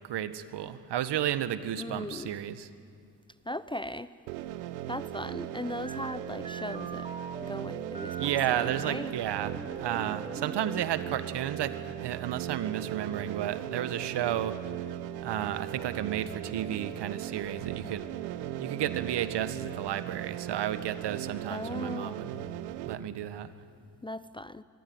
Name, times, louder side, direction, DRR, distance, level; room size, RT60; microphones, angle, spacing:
voice 1, 0.0-2.7 8.2-14.6 15.2-18.0 18.6-22.3 22.8-23.5, right 11 dB, 55° right, 13 dB, 1.6 m, -32 dB
voice 2, 1.8-2.3 3.5-4.1 4.9-7.1 7.4-9.1 21.5-22.2 24.0-24.6, left 1 dB, 10° left, 15 dB, 0.7 m, -38 dB
sound 1, 4.3-22.9, right 12 dB, 75° right, 1.1 m, -38 dB
sound 2, 5.9-8.9 9.4-11.0, right 3 dB, 10° right, 1.2 m, -43 dB
25.0 x 22.0 x 9.6 m, 2.2 s
hypercardioid pair, 50°, 49 cm